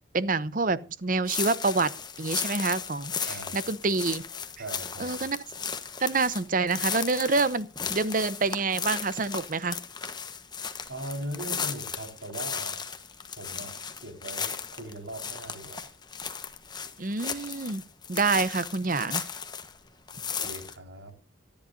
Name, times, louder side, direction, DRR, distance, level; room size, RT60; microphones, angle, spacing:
voice 1, 0.1-1.9 2.2-4.2 5.0-5.4 6.0-9.8 17.0-17.8 18.1-19.2, right 3 dB, 45° right, 0.8 m, -27 dB
sound 1, 1.3-19.8 20.1-20.7, left 6 dB, 20° left, 1.1 m, -35 dB
voice 2, 3.3-3.6 4.6-5.2 10.9-12.8 13.4-15.9 20.1-21.1, right 1 dB, 80° right, 4.5 m, -40 dB
25.0 x 10.5 x 2.6 m
head